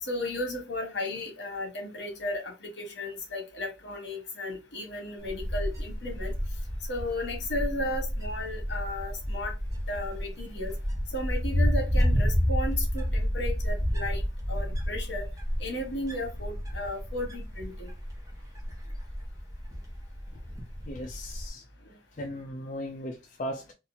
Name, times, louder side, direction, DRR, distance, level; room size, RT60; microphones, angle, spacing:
voice 1, 0.0-6.3 6.9-9.5 9.9-10.7 11.1-14.2 14.5-15.3 15.6-17.9, left 1 dB, 70° left, 1.4 m, -34 dB
Wind, 5.2-21.5, equal, 20° right, 0.9 m, -30 dB
voice 2, 20.9-21.6 22.2-23.7, left 1 dB, 45° left, 0.5 m, -37 dB
3.9 x 2.5 x 2.7 m
head